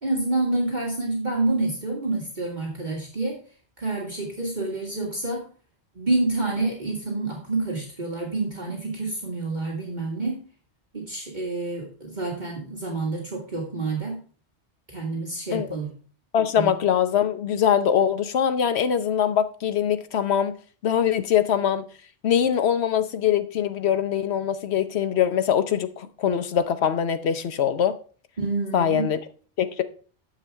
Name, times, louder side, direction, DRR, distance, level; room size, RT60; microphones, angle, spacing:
voice 1, 0.0-3.4 3.8-5.4 6.0-10.4 10.9-14.2 14.9-15.9 16.5-16.7 28.4-29.1, right 2 dB, 40° right, 1.9 m, -28 dB
voice 2, 16.3-20.6 20.8-21.8 22.2-28.0 28.7-29.2 29.6-29.8, left 9 dB, 70° left, 1.0 m, -23 dB
9.9 x 7.1 x 3.4 m
omnidirectional pair, 1.2 m